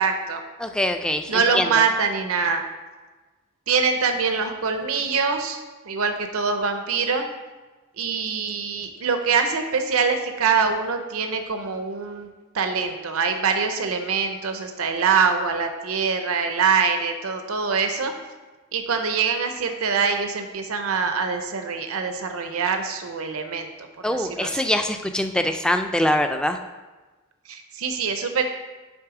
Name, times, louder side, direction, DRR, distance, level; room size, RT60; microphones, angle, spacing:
voice 1, 0.0-0.4 1.3-2.6 3.7-7.2 8.0-12.3 12.5-18.1 18.7-23.7 24.1-24.6 27.5-28.4, right 5 dB, 75° right, 6 dB, 0.6 m, -24 dB
voice 2, 0.6-1.7 24.0-26.6, left 1 dB, 5° left, 6 dB, 0.3 m, -23 dB
7.9 x 3.5 x 4.8 m, 1.3 s
head